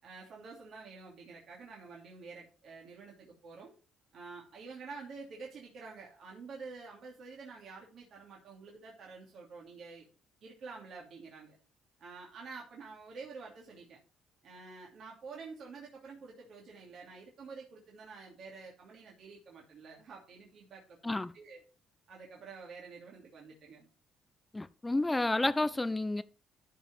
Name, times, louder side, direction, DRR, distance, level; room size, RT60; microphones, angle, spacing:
voice 1, 0.0-3.7 4.1-10.1 10.4-11.5 12.0-14.0 14.4-21.6 22.1-23.9, right 4 dB, 65° right, 2.8 m, -49 dB
voice 2, 24.5-26.2, left 2 dB, 15° left, 0.8 m, -30 dB
13.0 x 5.1 x 4.5 m
supercardioid pair, 60°, 0 cm